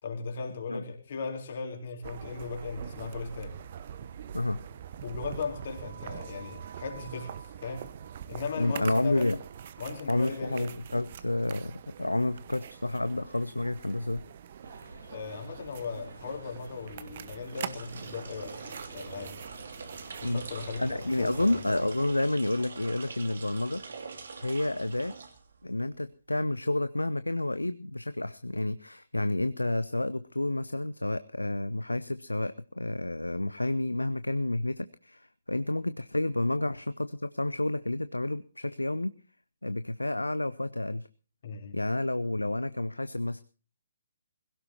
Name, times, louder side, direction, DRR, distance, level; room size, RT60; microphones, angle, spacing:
voice 1, 0.0-3.6 5.0-7.3 7.6-7.9 8.3-9.3 9.8-10.7 15.1-19.4 20.2-21.6 41.4-41.8, left 5 dB, 45° left, 3 dB, 3.8 m, -37 dB
sound 1, 2.0-21.9, right 8 dB, 40° right, 1.0 m, -44 dB
voice 2, 8.6-9.4 10.1-14.2 20.2-20.4 20.8-23.8 24.4-25.2 25.6-39.1 39.6-41.1 41.7-43.4, left 2 dB, 80° left, 14 dB, 0.7 m, -30 dB
sound 2, 14.6-22.2, right 1 dB, 90° right, 5.3 m, -50 dB
sound 3, 17.4-25.8, right 4 dB, 55° right, 2.8 m, -45 dB
21.0 x 17.0 x 2.9 m, 0.35 s
figure-of-eight pair, 135°, 0 cm